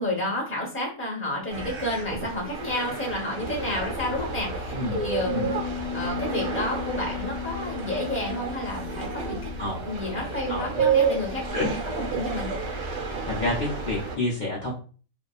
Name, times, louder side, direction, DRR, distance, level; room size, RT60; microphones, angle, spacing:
voice 1, 0.0-5.4 5.9-9.5 9.8-11.6 12.0-12.5, left 1 dB, 10° left, -2 dB, 0.7 m, -30 dB
sound 1, 1.5-14.2, right 6 dB, 80° right, 1.1 m, -31 dB
sound 2, 3.4-14.0, left 4 dB, 85° left, 1.2 m, -39 dB
Bass guitar, 5.2-11.5, left 9 dB, 55° right, 0.8 m, -37 dB
voice 2, 10.5-10.9 11.5-11.7 13.3-14.7, left 2 dB, 70° left, -5 dB, 0.4 m, -28 dB
2.7 x 2.2 x 2.3 m, 0.39 s
omnidirectional pair, 1.5 m